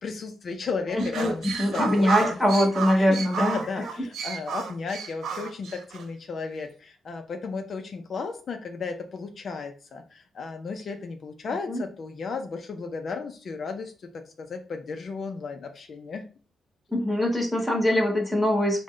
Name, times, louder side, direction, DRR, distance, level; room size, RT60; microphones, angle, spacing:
voice 1, 0.0-2.4 3.0-16.3, left 4 dB, 45° left, 5 dB, 0.4 m, -34 dB
voice 2, 0.9-1.3 1.6-3.6 11.7-11.8 16.9-18.8, left 1 dB, 5° left, 1 dB, 1.0 m, -23 dB
sound 1, 1.0-6.1, right 6 dB, 75° right, 0.5 m, -32 dB
4.8 x 2.1 x 3.7 m, 0.38 s
cardioid pair, 140°, 0 cm